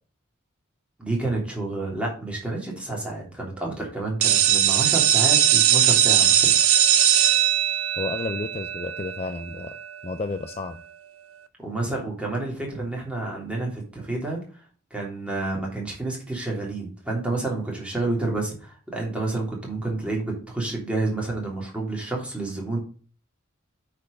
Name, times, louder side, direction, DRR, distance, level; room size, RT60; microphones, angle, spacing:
voice 1, 1.0-6.5 11.6-14.4 14.9-22.8, right 2 dB, 5° right, -2 dB, 3.0 m, -29 dB
sound 1, 4.2-9.9, right 11 dB, 90° right, 0.8 m, -20 dB
voice 2, 8.0-9.8 10.0-10.8, left 3 dB, 30° left, 8 dB, 0.5 m, -31 dB
8.8 x 4.5 x 5.2 m, 0.40 s
head